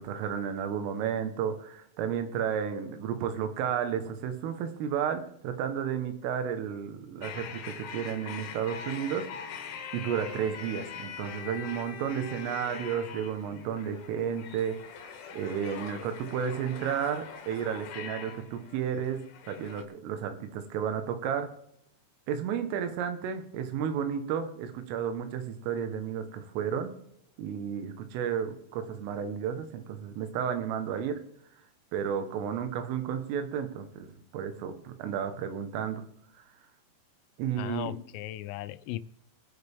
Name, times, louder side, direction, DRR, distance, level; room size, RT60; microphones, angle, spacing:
voice 1, 0.0-9.3 9.6-9.7 9.9-14.8 15.0-21.5 22.3-26.9 27.4-31.2 31.9-36.0 37.4-38.0, right 8 dB, 90° right, 8 dB, 3.9 m, -32 dB
sound 1, 7.2-19.8, left 7 dB, 70° left, 3.3 m, -43 dB
voice 2, 37.6-39.0, left 15 dB, 85° left, 14 dB, 3.2 m, -37 dB
24.0 x 8.5 x 3.6 m, 0.75 s
omnidirectional pair, 5.6 m